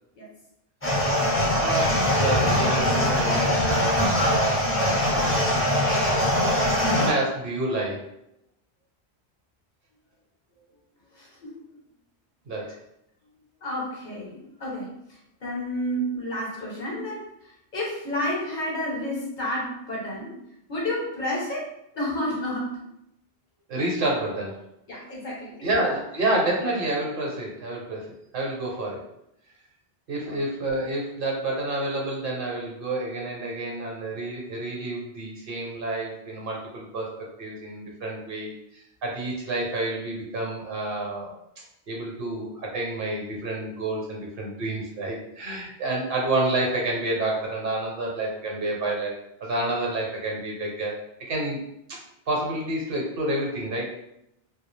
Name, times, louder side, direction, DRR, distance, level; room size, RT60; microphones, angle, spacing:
sound 1, 0.8-7.1, left 1 dB, 20° left, 0.4 m, -22 dB
voice 1, 1.5-5.5 6.9-8.2 12.5-12.8 23.7-24.6 25.6-29.0 30.1-37.1 37.4-38.5 39.0-41.4 41.9-51.6 51.9-52.0 52.3-53.9, right 2 dB, 60° right, -2 dB, 0.8 m, -29 dB
voice 2, 11.1-11.6 13.6-17.3 17.7-20.3 20.7-22.7 24.9-25.7 30.3-30.4, left 1 dB, 50° left, -4 dB, 0.9 m, -31 dB
2.3 x 2.1 x 3.1 m, 0.80 s
omnidirectional pair, 1.1 m